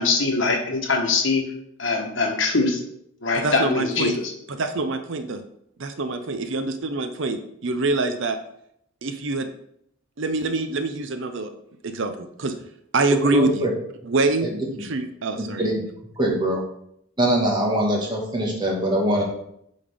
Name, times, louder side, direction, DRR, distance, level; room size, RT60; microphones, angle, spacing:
voice 1, 0.0-1.4 1.8-2.8 3.2-4.3, left 3 dB, 65° left, 2 dB, 1.3 m, -22 dB
voice 2, 3.3-4.2 4.5-5.4 5.8-8.4 9.0-9.5 10.2-11.5 11.8-12.5 12.9-13.7 14.0-14.5 14.8-15.7, right 3 dB, 65° right, 8 dB, 0.6 m, -25 dB
voice 3, 13.3-13.7 14.4-14.5 15.4-15.7 16.2-16.6 17.2-19.2, right 1 dB, 20° right, -2 dB, 1.6 m, -22 dB
8.4 x 4.2 x 3.5 m, 0.73 s
head